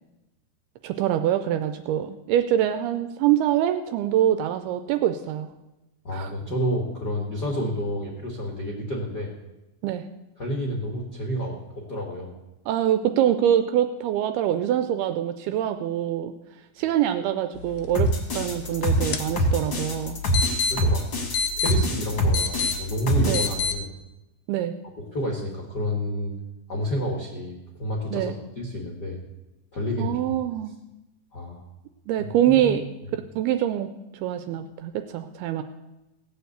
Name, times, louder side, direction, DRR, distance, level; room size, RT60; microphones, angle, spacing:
voice 1, 0.8-5.5 6.1-6.3 9.8-10.0 12.7-16.3 16.8-20.2 23.3-23.5 24.5-24.7 28.1-28.3 30.0-30.7 32.1-32.8 33.4-33.9 34.2-35.6, right 11 dB, 80° right, 9 dB, 2.3 m, -24 dB
voice 2, 6.0-9.3 10.4-12.4 20.4-21.0 21.6-23.9 25.1-26.3 26.7-29.2 29.7-30.4 31.3-31.6 32.5-32.8, equal, 55° left, -1 dB, 1.1 m, -30 dB
sound 1, 17.6-23.8, left 5 dB, 85° left, 1.8 m, -30 dB
sound 2, 17.9-23.5, equal, 35° left, 2.0 m, -24 dB
17.0 x 6.9 x 8.0 m, 0.99 s
omnidirectional pair, 4.9 m